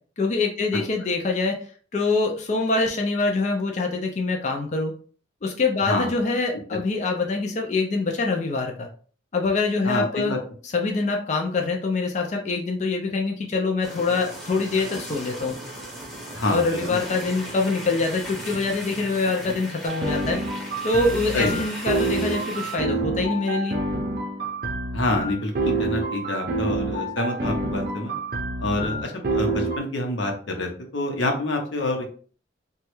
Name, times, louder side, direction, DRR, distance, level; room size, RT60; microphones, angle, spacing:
voice 1, 0.2-1.6 1.9-4.9 5.4-8.9 9.3-10.4 10.6-15.5 16.5-20.4 20.8-23.8, left 3 dB, 40° left, 2 dB, 0.4 m, -24 dB
voice 2, 9.8-10.4 16.3-17.0 21.3-21.6 24.9-28.1 28.6-32.1, left 2 dB, 90° left, 2 dB, 0.8 m, -27 dB
sound 1, 13.8-22.8, right 1 dB, ahead, 0.7 m, -37 dB
sound 2, 19.9-29.8, right 2 dB, 55° right, 0.6 m, -27 dB
3.1 x 2.3 x 3.0 m, 0.43 s
head